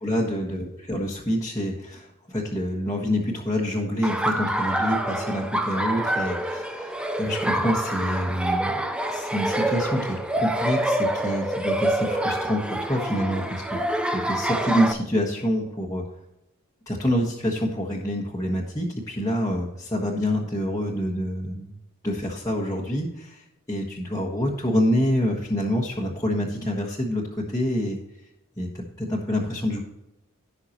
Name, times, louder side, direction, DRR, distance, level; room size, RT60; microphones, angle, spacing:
voice 1, 0.0-13.6 14.0-16.0 16.9-21.7 22.0-28.0 28.6-29.8, equal, 15° left, -4 dB, 1.4 m, -27 dB
Laughter, 4.0-14.9, right 1 dB, 5° right, 0.7 m, -26 dB
16.5 x 5.8 x 3.0 m, 0.89 s
head